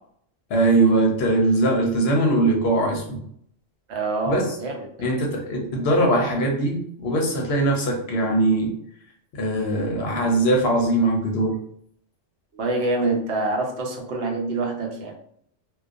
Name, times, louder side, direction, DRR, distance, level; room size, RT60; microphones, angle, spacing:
voice 1, 0.5-3.2 4.3-4.4 5.0-8.7 9.3-11.6, right 2 dB, 60° left, 0 dB, 0.7 m, -21 dB
voice 2, 3.9-4.9 12.5-15.1, right 2 dB, 65° right, 0 dB, 0.8 m, -26 dB
2.2 x 2.2 x 2.4 m, 0.66 s
omnidirectional pair, 1.4 m